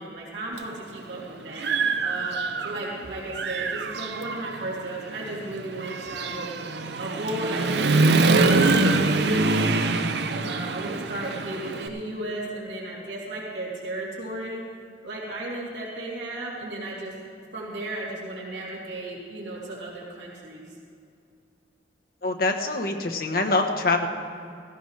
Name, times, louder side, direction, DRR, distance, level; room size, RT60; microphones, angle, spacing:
voice 1, 0.0-2.4 2.6-6.6 7.0-10.0 10.4-14.6 15.0-17.1 17.5-20.6, right 1 dB, 85° right, -6 dB, 3.0 m, -34 dB
Human voice / Motorcycle, 0.6-0.7 1.2-2.9 3.3-11.9, right 3 dB, 65° right, 0.6 m, -24 dB
voice 2, 22.2-24.1, left 2 dB, 55° left, 4 dB, 1.1 m, -24 dB
16.5 x 15.5 x 3.3 m, 2.4 s
head